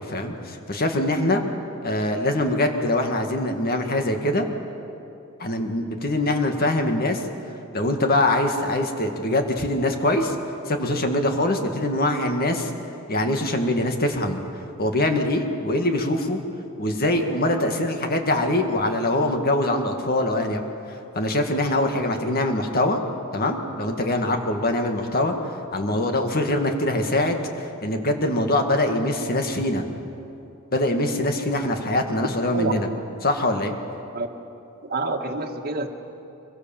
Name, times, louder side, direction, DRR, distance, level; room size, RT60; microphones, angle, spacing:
voice 1, 0.0-1.4 1.8-4.5 5.4-7.2 7.7-10.4 10.7-12.7 13.1-14.4 14.8-16.4 16.8-20.6 21.2-23.0 23.3-25.3 25.7-29.8 30.7-32.9 33.2-33.7, left 1 dB, 45° left, 4 dB, 2.1 m, -23 dB
voice 2, 32.2-32.8 34.1-34.3 34.8-35.9, right 3 dB, 45° right, 4 dB, 1.7 m, -28 dB
25.0 x 22.5 x 7.4 m, 2.7 s
head